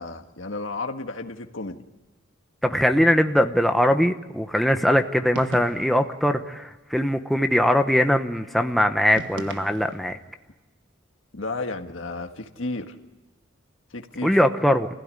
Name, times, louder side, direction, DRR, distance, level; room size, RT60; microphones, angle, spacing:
voice 1, 0.0-1.8 11.3-12.9 13.9-14.3, left 3 dB, 70° left, 4 dB, 1.6 m, -32 dB
voice 2, 2.6-10.2 14.2-14.9, equal, ahead, 5 dB, 1.0 m, -21 dB
sound 1, 5.3-6.1 9.1-10.2, right 2 dB, 65° right, 1.5 m, -38 dB
29.0 x 16.0 x 9.8 m, 1.1 s
head